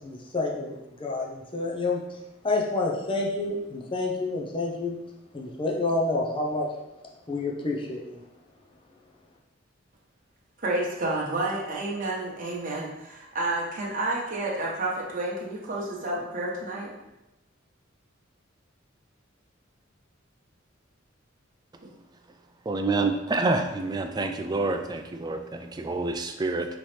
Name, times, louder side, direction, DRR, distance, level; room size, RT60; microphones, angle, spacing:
voice 1, 0.0-2.2 2.4-5.0 5.3-6.7 7.3-8.2, left 2 dB, 25° left, -2 dB, 0.6 m, -29 dB
voice 2, 10.6-16.9, right 2 dB, 45° right, -4 dB, 1.0 m, -30 dB
voice 3, 22.7-26.7, right 3 dB, 20° right, 6 dB, 0.3 m, -27 dB
5.5 x 3.0 x 3.2 m, 0.93 s
head